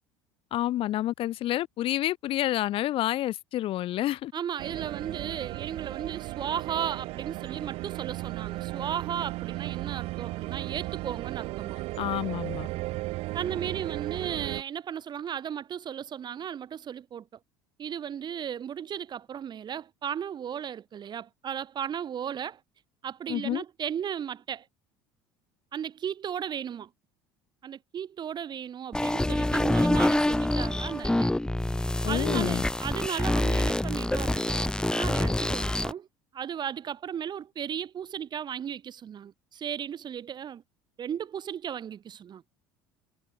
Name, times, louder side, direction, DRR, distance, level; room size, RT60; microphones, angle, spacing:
voice 1, 0.5-4.3 12.0-12.7 23.3-23.6 32.0-32.6, left 14 dB, 55° left, 3.3 m, -29 dB
voice 2, 4.3-11.8 13.3-17.3 17.8-22.6 23.0-24.7 25.7-26.9 27.6-31.3 32.1-36.1 36.3-40.6 41.0-42.4, right 9 dB, 40° right, 3.5 m, -35 dB
sound 1, 4.6-14.6, right 20 dB, 65° right, 2.3 m, -35 dB
sound 2, 28.9-35.9, left 1 dB, 5° left, 3.0 m, -26 dB
hypercardioid pair, 75°, 11 cm